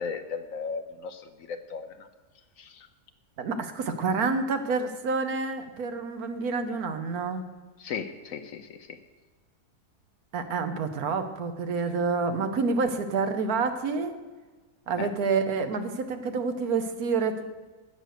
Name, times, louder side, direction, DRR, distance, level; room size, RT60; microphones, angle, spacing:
voice 1, 0.0-2.1 2.6-2.9 7.8-9.0 15.0-15.1, left 5 dB, 65° left, 9 dB, 1.1 m, -36 dB
voice 2, 3.4-7.4 10.3-14.1 14.9-17.4, right 4 dB, 70° right, 8 dB, 1.4 m, -28 dB
11.0 x 8.0 x 6.5 m, 1.3 s
omnidirectional pair, 1.7 m